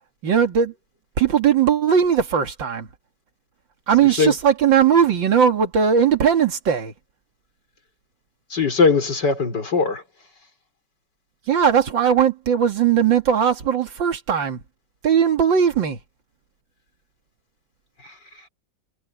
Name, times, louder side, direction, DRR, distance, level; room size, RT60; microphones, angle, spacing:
voice 1, 0.2-0.7 1.2-2.9 3.9-6.9 11.5-14.6 15.0-16.0, right 8 dB, 85° right, 2.7 m, -18 dB
voice 2, 4.0-4.3 8.5-10.0 18.0-18.5, left 5 dB, 65° left, 4.7 m, -21 dB
omnidirectional pair, 2.0 m